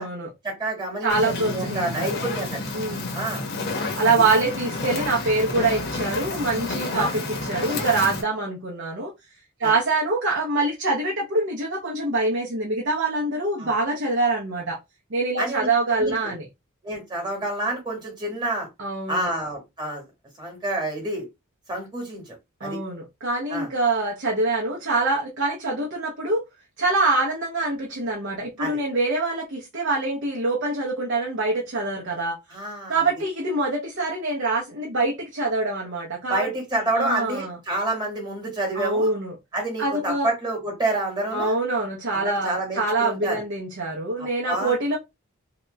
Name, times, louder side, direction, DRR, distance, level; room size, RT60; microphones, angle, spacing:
voice 1, 0.4-2.7 3.1-3.5 4.0-4.2 6.9-7.1 9.6-9.7 13.6-13.7 15.4-15.7 15.9-16.3 16.8-18.7 19.1-20.0 20.4-21.3 21.7-22.8 23.5-23.7 28.6-28.8 32.5-33.0 36.3-39.1 39.5-41.5 42.1-43.4 44.2-45.0, right 2 dB, 20° right, 1.4 m, -28 dB
voice 2, 1.0-2.2 2.7-3.1 3.9-9.1 9.6-14.8 15.1-16.4 18.8-19.3 22.6-26.4 26.8-32.4 32.9-36.5 37.0-37.6 38.7-39.3 39.8-40.3 41.3-45.0, right 2 dB, 60° right, 0.8 m, -25 dB
Fire, 1.1-8.2, left 2 dB, 50° left, 0.9 m, -30 dB
2.9 x 2.3 x 3.1 m
head